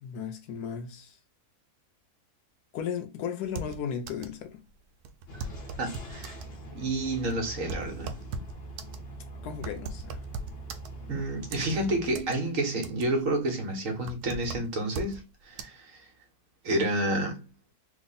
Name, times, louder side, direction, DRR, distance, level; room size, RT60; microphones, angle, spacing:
voice 1, 0.0-1.2 2.7-4.6 9.4-10.2, left 7 dB, 90° left, 1.2 m, -35 dB
sound 1, 3.4-4.4 4.7-4.8 5.0-6.5 7.1-11.2 11.5-12.4 12.7-13.3 13.6-15.2 15.6-15.7, right 3 dB, 80° right, 1.1 m, -39 dB
sound 2, 5.3-12.1, right 2 dB, 45° left, 1.0 m, -43 dB
voice 2, 5.8-6.3 6.7-8.2 11.1-16.0 16.6-17.4, right 1 dB, 60° right, 1.3 m, -30 dB
3.4 x 2.1 x 3.8 m
omnidirectional pair, 1.6 m